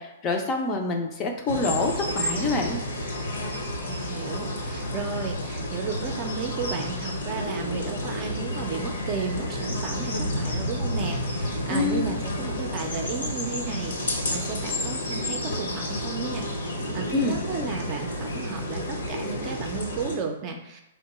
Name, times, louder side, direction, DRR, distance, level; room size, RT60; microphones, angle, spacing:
voice 1, 0.0-2.8 11.7-12.1 17.1-17.4, left 3 dB, 25° left, 3 dB, 0.5 m, -26 dB
sound 1, 1.5-20.2, left 1 dB, 85° left, 1.0 m, -30 dB
voice 2, 3.8-20.8, right 5 dB, 30° right, 3 dB, 0.5 m, -34 dB
3.6 x 2.2 x 4.2 m, 0.91 s
hypercardioid pair, 145°, 0 cm